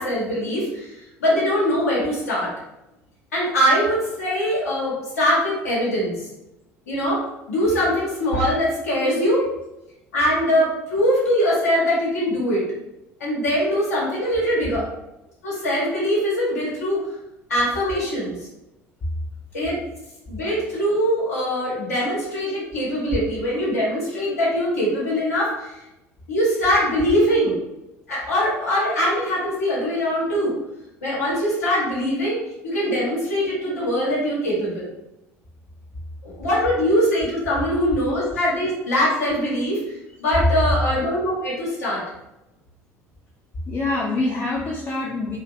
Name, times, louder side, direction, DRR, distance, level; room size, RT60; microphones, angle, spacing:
voice 1, 0.0-2.5 3.3-6.3 6.9-7.2 7.5-9.4 10.1-12.6 13.2-14.8 15.4-17.0 17.5-18.4 19.5-19.7 20.3-25.7 26.3-27.6 28.1-30.6 31.0-32.4 32.6-34.9 36.2-42.0, equal, 75° left, -6 dB, 0.8 m, -22 dB
voice 2, 38.1-38.4 43.7-45.4, left 2 dB, 30° left, -4 dB, 0.5 m, -26 dB
2.5 x 2.1 x 2.4 m, 0.91 s
figure-of-eight pair, 60°, 8 cm